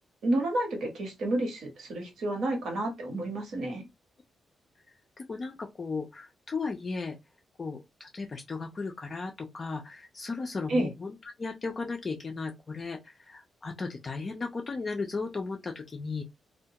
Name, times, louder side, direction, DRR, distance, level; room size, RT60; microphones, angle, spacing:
voice 1, 0.2-3.8 10.7-10.9, right 1 dB, 70° right, 1.0 m, -30 dB
voice 2, 5.2-7.2 7.6-16.2, left 4 dB, 30° left, 0.3 m, -36 dB
2.2 x 2.1 x 2.7 m
wide cardioid pair, 170°, 0 cm